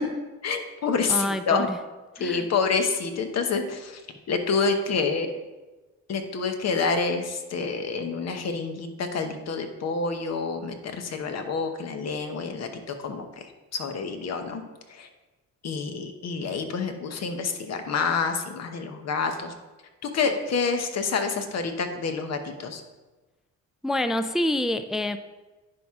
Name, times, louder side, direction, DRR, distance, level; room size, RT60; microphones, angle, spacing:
voice 1, 0.4-1.7 2.2-4.0 4.3-5.3 6.1-14.6 14.9-15.1 15.6-19.5 20.0-22.8, left 4 dB, 60° left, 6 dB, 1.0 m, -28 dB
voice 2, 1.1-1.8 2.2-2.5 23.8-25.2, left 1 dB, ahead, 10 dB, 0.3 m, -27 dB
10.0 x 4.7 x 3.7 m, 1.2 s
cardioid pair, 90°, 30 cm